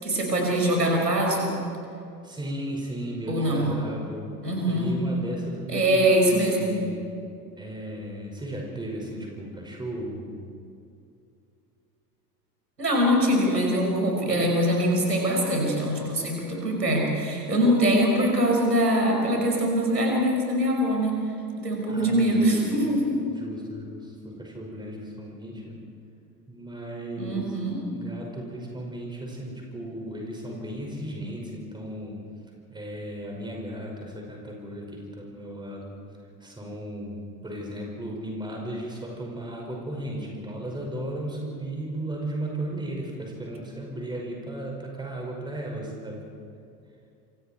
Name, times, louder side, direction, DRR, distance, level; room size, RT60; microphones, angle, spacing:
voice 1, 0.0-1.5 3.3-3.7 4.4-5.0 5.7-6.7 12.8-21.2 21.6-23.2 27.2-27.8, equal, 80° right, 0 dB, 5.9 m, -23 dB
voice 2, 2.2-4.3 4.7-7.1 7.6-10.5 21.9-22.6 23.3-25.8 26.5-27.6 27.9-32.2 32.7-36.0 36.4-46.2, right 1 dB, 10° right, 0 dB, 5.6 m, -35 dB
29.0 x 25.0 x 4.6 m, 2.5 s
figure-of-eight pair, 75°, 49 cm